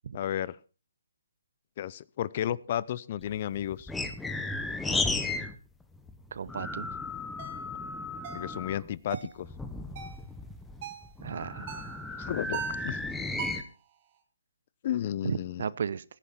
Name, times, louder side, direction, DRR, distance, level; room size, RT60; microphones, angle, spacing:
voice 1, 0.1-0.6 1.8-3.9 8.3-9.2 12.2-13.0 14.8-15.6, left 11 dB, 40° left, 22 dB, 0.6 m, -32 dB
sound 1, 3.2-5.5 5.8-8.9 9.4-13.6, left 2 dB, 5° left, 1.1 m, -35 dB
voice 2, 6.3-6.9 11.2-12.0 15.2-16.0, right 7 dB, 60° right, 20 dB, 0.7 m, -35 dB
sound 2, 7.4-7.6 8.2-8.5 9.1-9.4 10.0-10.2 10.8-11.1 11.7-12.0 12.5-12.9 13.4-13.7, right 8 dB, 40° right, 2.6 m, -41 dB
16.5 x 10.0 x 4.3 m, 0.34 s
hypercardioid pair, 150°, 0 cm